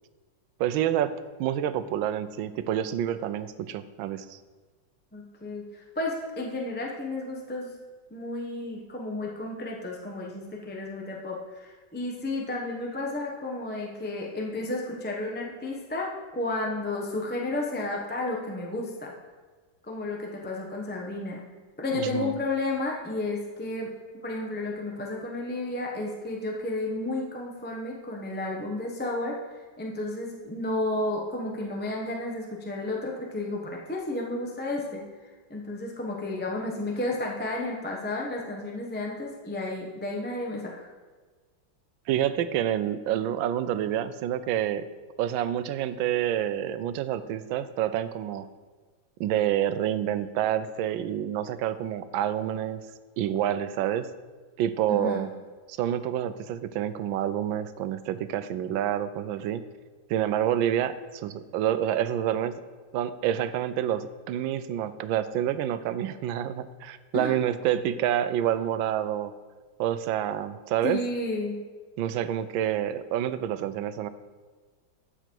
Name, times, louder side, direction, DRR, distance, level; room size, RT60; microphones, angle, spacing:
voice 1, 0.6-1.1 1.4-4.4 21.9-22.4 42.1-44.9 45.2-48.5 49.2-52.9 53.2-54.1 54.6-55.3 55.7-59.6 60.1-62.6 62.9-69.3 69.8-71.0 72.0-74.1, right 11 dB, 85° right, 13 dB, 1.3 m, -28 dB
voice 2, 5.1-7.7 8.1-19.1 19.9-21.4 21.8-23.9 24.2-29.3 29.8-35.0 35.5-40.9 54.9-55.3 67.1-67.3 70.8-71.6, left 2 dB, 10° left, -2 dB, 0.5 m, -32 dB
12.5 x 5.0 x 4.5 m, 1.4 s
omnidirectional pair, 2.1 m